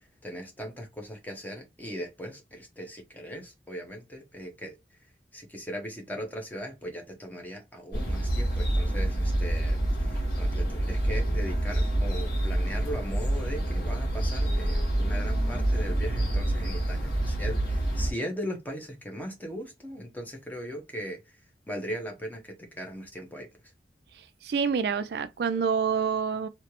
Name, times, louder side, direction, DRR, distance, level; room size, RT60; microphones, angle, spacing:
voice 1, 0.2-4.8 5.3-21.2 21.7-23.5, equal, 10° left, 0.9 m, -38 dB
sound 1, 7.9-18.1, right 1 dB, 60° left, 1.6 m, -27 dB
voice 2, 24.1-26.5, right 6 dB, 65° right, 0.3 m, -27 dB
3.2 x 2.8 x 2.9 m
head